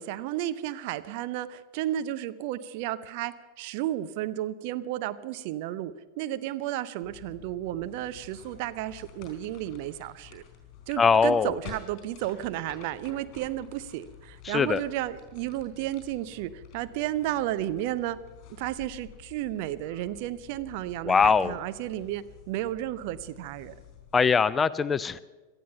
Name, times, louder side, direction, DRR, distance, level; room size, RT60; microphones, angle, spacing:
voice 1, 0.0-10.4 10.9-18.2 18.6-23.7, right 13 dB, 45° right, 12 dB, 0.6 m, -33 dB
sound 1, 7.0-24.3, left 9 dB, 40° left, 4.1 m, -50 dB
voice 2, 11.0-11.5 14.5-14.8 21.1-21.6 24.1-25.2, left 5 dB, 15° left, 18 dB, 0.4 m, -22 dB
18.0 x 13.0 x 5.7 m, 1.2 s
figure-of-eight pair, 90°, 0 cm